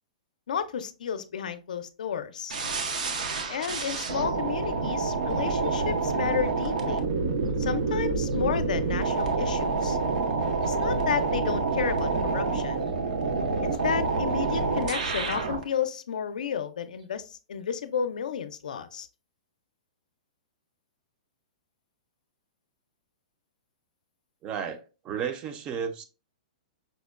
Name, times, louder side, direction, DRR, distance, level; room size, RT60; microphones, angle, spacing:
voice 1, 0.5-2.6 3.5-7.0 7.6-10.0 10.6-12.9 13.6-19.1, left 7 dB, 85° left, 0.4 m, -32 dB
sound 1, 2.5-15.6, right 4 dB, 80° right, 0.6 m, -27 dB
voice 2, 24.4-26.0, right 7 dB, 20° right, 0.4 m, -33 dB
5.2 x 2.1 x 2.3 m
hypercardioid pair, 155°, 4 cm